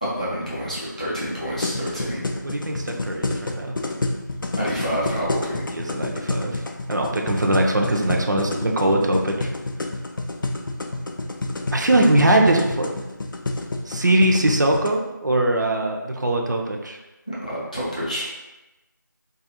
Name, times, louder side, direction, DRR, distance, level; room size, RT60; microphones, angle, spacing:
voice 1, 0.0-2.2 4.5-5.7 17.3-18.3, equal, 20° left, -7 dB, 0.5 m, -28 dB
sound 1, 1.6-14.9, left 2 dB, 80° left, 0.4 m, -29 dB
voice 2, 2.4-3.8 5.7-6.6 6.9-9.5 11.7-12.9 13.9-17.0, right 1 dB, 65° right, 1 dB, 0.5 m, -21 dB
2.8 x 2.4 x 2.8 m, 1.0 s
figure-of-eight pair, 180°, 11 cm